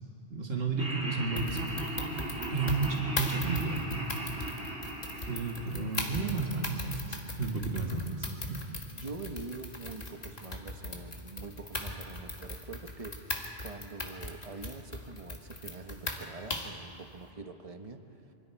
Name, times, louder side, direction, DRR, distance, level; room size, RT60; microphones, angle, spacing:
voice 1, 0.3-1.6 2.5-4.0 5.3-8.1 8.5-8.6, right 4 dB, 70° right, 0 dB, 2.3 m, -32 dB
Laughter, 0.8-7.0, right 1 dB, 90° right, 3.0 m, -38 dB
sound 1, 1.4-16.8, left 2 dB, 40° left, 1.9 m, -39 dB
voice 2, 8.9-18.2, right 3 dB, 35° right, 6 dB, 1.2 m, -44 dB
26.5 x 24.5 x 4.6 m, 2.7 s
omnidirectional pair, 1.1 m